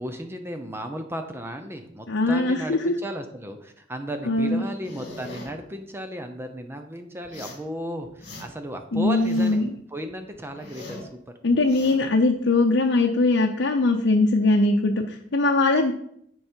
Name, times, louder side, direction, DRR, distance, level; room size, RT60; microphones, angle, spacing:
voice 1, 0.0-9.6 9.9-11.3, equal, 15° right, 6 dB, 0.7 m, -34 dB
voice 2, 2.1-2.9 4.3-4.6 8.9-9.7 11.4-15.9, left 2 dB, 80° left, 1 dB, 0.7 m, -21 dB
sound 1, 4.8-5.5 7.2-7.7 8.0-8.7 9.0-9.7 10.1-11.1 11.5-12.0, left 2 dB, 55° left, 2.6 m, -41 dB
10.5 x 4.8 x 4.5 m, 0.70 s
head